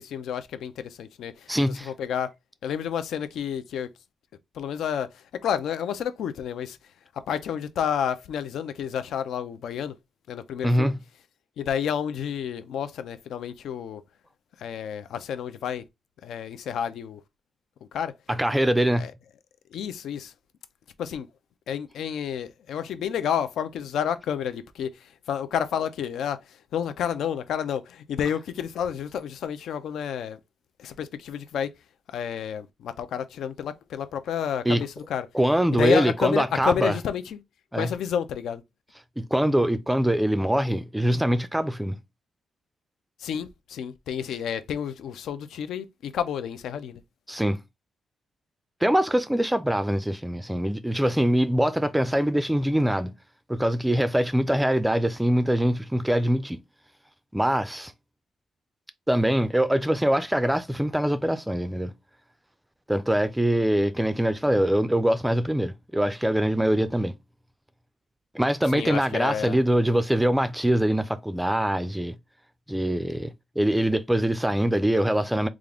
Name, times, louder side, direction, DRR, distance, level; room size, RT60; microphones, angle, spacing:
voice 1, 0.0-2.3 2.6-3.9 4.5-6.8 7.1-10.0 10.3-10.9 11.6-14.0 14.6-15.8 16.2-17.2 17.9-18.1 19.0-19.1 19.7-20.3 21.0-21.3 21.7-30.4 30.8-31.7 32.1-35.3 35.7-37.4 37.7-38.6 43.2-47.0 68.7-69.6, left 8 dB, 85° left, 0.4 m, -30 dB
voice 2, 1.5-1.9 10.6-11.0 18.3-19.1 34.7-34.8 35.3-36.9 37.7-37.9 39.2-42.0 47.3-47.6 48.8-53.1 53.5-56.6 57.3-57.9 59.1-61.9 62.9-67.1 68.3-72.2 72.7-75.5, right 1 dB, 5° right, 0.3 m, -23 dB
3.6 x 2.4 x 3.4 m
wide cardioid pair, 155°, 0 cm